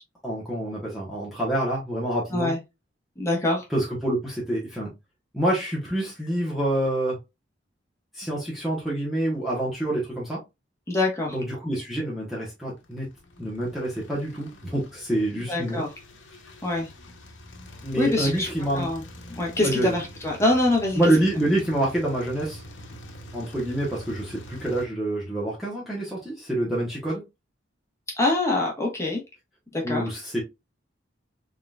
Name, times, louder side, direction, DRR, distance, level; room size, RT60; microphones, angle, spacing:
voice 1, 0.2-2.5 3.7-4.9 5.3-7.2 8.1-10.4 11.3-13.1 13.4-15.8 17.8-18.9 19.6-20.0 21.0-22.6 23.3-27.2 29.8-30.4, right 1 dB, ahead, 1.1 m, -27 dB
voice 2, 3.2-3.6 10.9-11.4 15.5-15.9 16.6-16.9 18.0-18.5 18.7-19.0 19.4-21.0 28.1-29.2 29.7-30.1, left 2 dB, 15° left, 1.3 m, -24 dB
sound 1, 12.9-24.9, equal, 75° left, 1.0 m, -44 dB
3.9 x 3.7 x 2.4 m
head